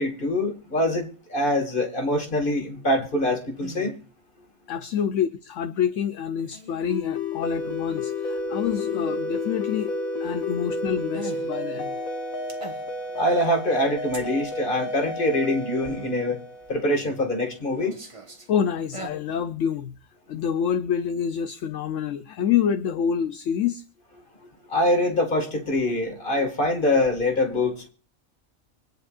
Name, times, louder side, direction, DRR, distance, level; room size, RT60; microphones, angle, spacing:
voice 1, 0.0-4.0 13.2-16.4 16.7-18.0 24.7-27.9, left 1 dB, 40° left, 2.2 m, -24 dB
sound 1, 3.6-4.0 6.4-6.9 8.6-9.2 11.1-11.5 12.5-13.1 14.1-14.3 15.9-16.1 16.9-17.3 17.7-18.5 18.8-19.1, right 2 dB, 25° right, 1.3 m, -41 dB
voice 2, 4.7-9.9 10.2-12.0 18.5-20.0 20.3-23.8, left 8 dB, 65° left, 1.0 m, -27 dB
sound 2, 6.9-17.2, left 2 dB, 85° left, 1.9 m, -31 dB
25.0 x 9.6 x 2.5 m
omnidirectional pair, 1.4 m